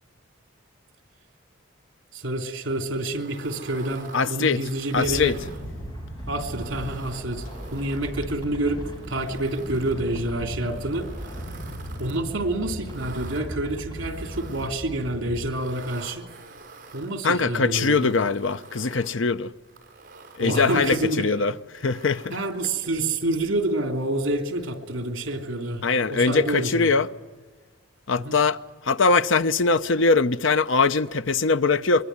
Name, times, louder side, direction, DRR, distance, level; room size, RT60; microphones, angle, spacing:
voice 1, 2.1-5.3 6.3-7.4 7.7-8.8 9.1-11.1 12.0-16.2 16.9-18.1 20.4-21.2 22.3-25.8 26.1-26.9 28.2-28.4, right 1 dB, 70° right, 3.0 m, -28 dB
sound 1, 3.1-5.7 6.2-8.5 8.9-10.0 10.6-12.2 12.7-13.4 14.0-14.9 15.4-17.1 17.6-19.1 19.6-21.2 21.7-22.6, right 4 dB, 40° right, 5.5 m, -46 dB
voice 2, 4.1-5.3 17.2-19.5 20.4-22.4 25.8-27.1 28.1-32.0, left 4 dB, 75° left, 0.8 m, -22 dB
sound 2, 4.9-15.5, equal, 20° left, 6.1 m, -37 dB
24.5 x 22.5 x 9.5 m
head